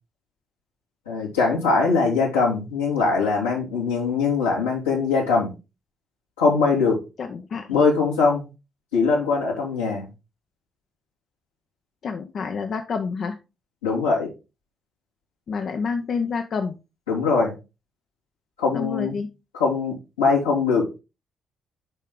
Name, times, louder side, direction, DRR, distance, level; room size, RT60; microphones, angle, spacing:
voice 1, 1.1-5.5 6.4-7.0 7.7-8.4 8.9-10.1 13.8-14.3 17.1-17.5 18.6-19.1 19.5-20.9, left 4 dB, 85° left, -5 dB, 2.8 m, -21 dB
voice 2, 7.2-7.7 12.0-13.4 15.5-16.7 18.7-19.3, left 5 dB, 50° left, 6 dB, 0.8 m, -28 dB
8.2 x 5.5 x 3.8 m, 0.28 s
figure-of-eight pair, 45°, 0 cm